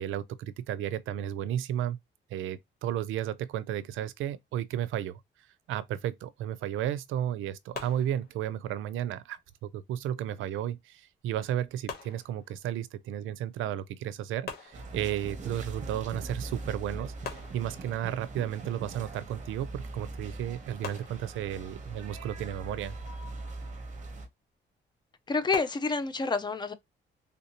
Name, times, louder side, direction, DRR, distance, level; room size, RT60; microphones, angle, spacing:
voice 1, 0.0-2.0 2.3-5.2 5.7-22.9, right 11 dB, 85° right, 0.4 m, -33 dB
sound 1, 7.7-8.7 11.9-12.9 14.4-15.4 17.2-18.2 20.8-21.8 25.5-26.1, left 5 dB, 55° left, 1.0 m, -44 dB
sound 2, 14.7-24.3, right 2 dB, 40° right, 0.8 m, -41 dB
voice 2, 25.3-26.7, left 4 dB, 20° left, 0.4 m, -28 dB
3.5 x 2.6 x 2.8 m
cardioid pair, 150°, 20 cm